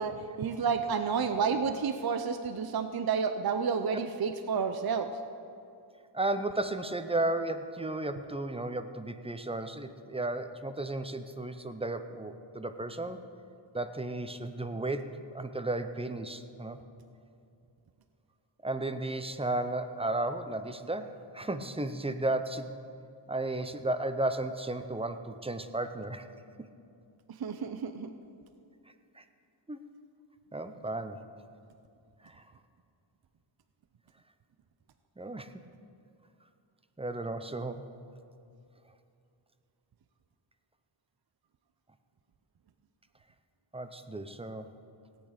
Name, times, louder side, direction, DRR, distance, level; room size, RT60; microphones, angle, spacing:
voice 1, 0.0-5.1 27.4-28.1, right 6 dB, 50° right, 8 dB, 0.6 m, -30 dB
voice 2, 6.1-13.2 13.7-16.8 18.6-22.7 23.3-26.3 29.2-29.3 29.7-29.8 30.5-31.2 32.2-32.4 35.2-35.6 37.0-37.9 43.7-44.7, right 2 dB, 10° right, 9 dB, 0.6 m, -34 dB
17.0 x 8.9 x 5.1 m, 2.5 s
wide cardioid pair, 80°, 47 cm